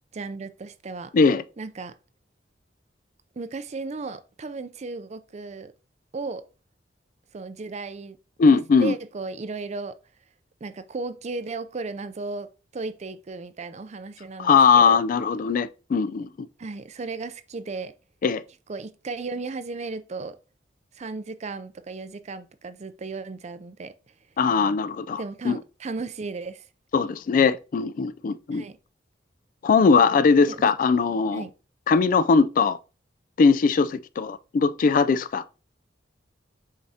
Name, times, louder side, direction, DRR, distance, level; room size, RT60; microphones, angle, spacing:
voice 1, 0.1-1.1 1.6-2.0 3.4-5.7 6.1-6.5 7.3-8.2 8.5-10.0 10.6-15.0 16.6-17.9 18.7-20.4 21.0-23.9 25.2-26.6 28.5-28.8 30.5-30.7 31.3-31.5, right 3 dB, 40° right, 0.5 m, -35 dB
voice 2, 8.4-8.9 14.4-16.5 18.2-18.4 24.4-25.6 26.9-28.6 29.6-31.5 31.9-32.8 33.4-35.4, left 5 dB, 45° left, 0.3 m, -20 dB
7.2 x 4.9 x 2.8 m
head